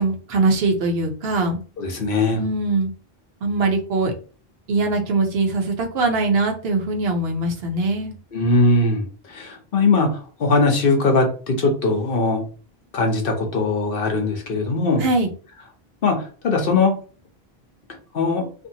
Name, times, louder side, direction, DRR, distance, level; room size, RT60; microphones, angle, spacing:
voice 1, 0.0-1.6 2.3-2.9 3.4-4.1 4.7-8.1 15.0-15.3, right 3 dB, 75° right, 3 dB, 1.0 m, -22 dB
voice 2, 1.8-2.4 8.3-12.4 12.9-15.0 16.0-17.0 18.1-18.5, left 3 dB, 65° left, 3 dB, 0.9 m, -20 dB
2.6 x 2.6 x 2.7 m, 0.37 s
omnidirectional pair, 1.0 m